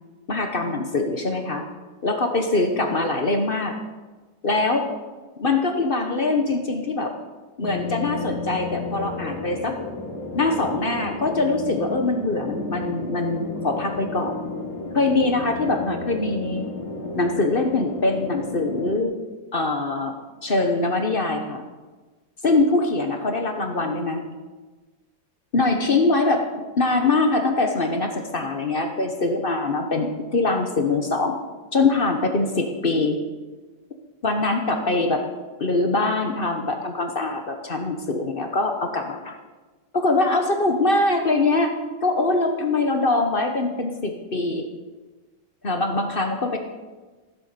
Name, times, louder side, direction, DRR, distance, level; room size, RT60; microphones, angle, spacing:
voice 1, 0.3-1.6 2.0-3.8 4.4-4.9 5.4-7.1 7.6-9.7 10.3-14.3 14.9-16.6 17.1-19.1 19.5-20.1 20.4-21.6 22.4-24.2 25.5-31.4 31.7-33.2 34.2-35.2 35.6-39.4 39.9-44.7 45.6-46.6, left 2 dB, 35° left, 4 dB, 1.0 m, -23 dB
sound 1, 7.6-19.0, left 3 dB, 80° left, 2.5 m, -33 dB
15.0 x 7.7 x 6.7 m, 1.3 s
omnidirectional pair, 2.1 m